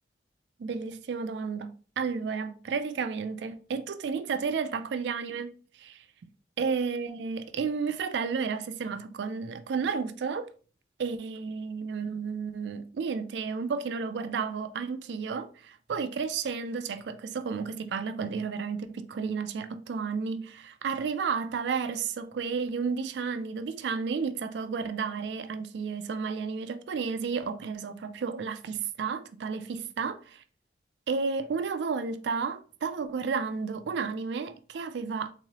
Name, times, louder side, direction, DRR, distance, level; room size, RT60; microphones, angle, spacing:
voice 1, 0.6-6.1 6.6-10.5 11.0-30.4 31.1-35.3, right 5 dB, 80° right, 0.3 m, -32 dB
3.6 x 3.0 x 2.8 m
head